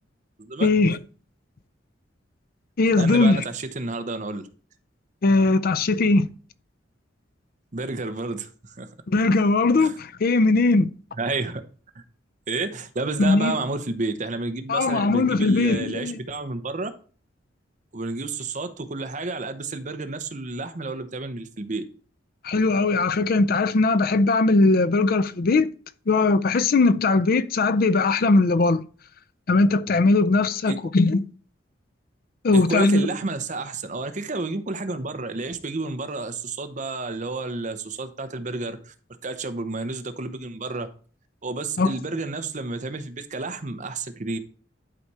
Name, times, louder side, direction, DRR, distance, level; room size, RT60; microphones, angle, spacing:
voice 1, 0.6-1.0 2.8-3.4 5.2-6.3 9.1-10.9 13.2-13.6 14.7-16.2 22.4-25.7 26.1-28.8 29.5-31.2 32.4-33.1 41.8-41.9, left 3 dB, 50° left, 0.5 m, -20 dB
voice 2, 3.0-4.5 7.7-8.9 9.8-9.9 11.2-11.6 12.0-12.1 12.5-16.9 17.9-21.8 30.6-30.8 32.5-38.9 39.2-40.9 41.4-44.4, right 3 dB, 40° right, 0.9 m, -30 dB
11.5 x 4.2 x 4.8 m
head